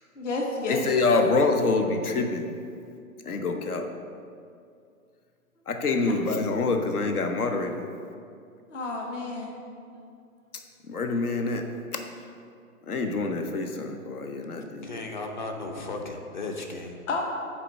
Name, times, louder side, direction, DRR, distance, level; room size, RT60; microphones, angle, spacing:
voice 1, 0.2-0.8 8.7-9.5 17.1-17.2, left 3 dB, 55° left, 0 dB, 1.1 m, -30 dB
voice 2, 0.7-2.5 3.3-3.9 5.7-7.8 10.9-12.0 12.9-15.0, left 3 dB, 75° left, 5 dB, 1.0 m, -26 dB
voice 3, 14.7-17.0, left 2 dB, 30° left, 4 dB, 0.6 m, -35 dB
7.4 x 4.5 x 6.3 m, 2.3 s
hypercardioid pair, 160°, 45 cm